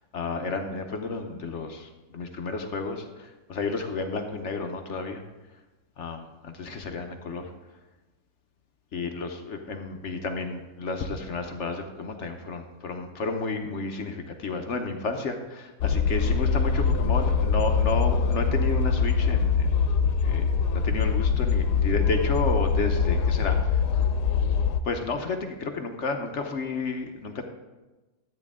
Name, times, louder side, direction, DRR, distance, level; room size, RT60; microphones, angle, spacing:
voice 1, 0.1-5.2 6.0-7.4 8.9-19.8 20.2-23.8 24.8-27.5, left 3 dB, 55° left, 5 dB, 1.0 m, -32 dB
sound 1, 15.8-24.8, left 5 dB, 90° left, 1.2 m, -23 dB
12.5 x 9.0 x 3.6 m, 1.1 s
omnidirectional pair, 1.7 m